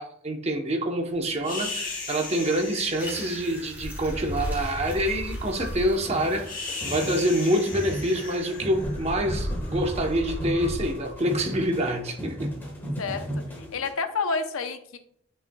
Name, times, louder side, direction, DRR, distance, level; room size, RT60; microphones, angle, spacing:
voice 1, 0.0-12.5, right 1 dB, 30° right, 3 dB, 0.9 m, -26 dB
sound 1, 1.4-11.8, left 1 dB, 45° left, 2.5 m, -35 dB
sound 2, 3.0-8.4, equal, 10° right, 2.7 m, -45 dB
sound 3, 6.0-13.9, equal, 10° left, 1.4 m, -35 dB
voice 2, 13.7-15.0, left 4 dB, 80° left, 9 dB, 0.7 m, -29 dB
10.5 x 5.6 x 2.3 m, 0.69 s
head